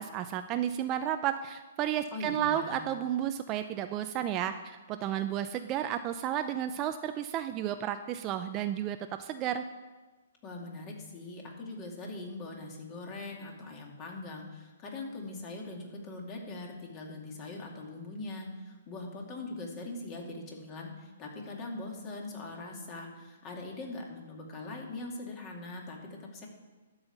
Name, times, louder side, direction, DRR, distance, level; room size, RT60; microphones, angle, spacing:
voice 1, 0.0-9.6, right 10 dB, 25° right, 9 dB, 0.4 m, -32 dB
voice 2, 2.1-2.8 10.4-26.5, left 2 dB, 25° left, 0 dB, 2.3 m, -41 dB
12.0 x 5.6 x 8.0 m, 1.2 s
hypercardioid pair, 150°, 0 cm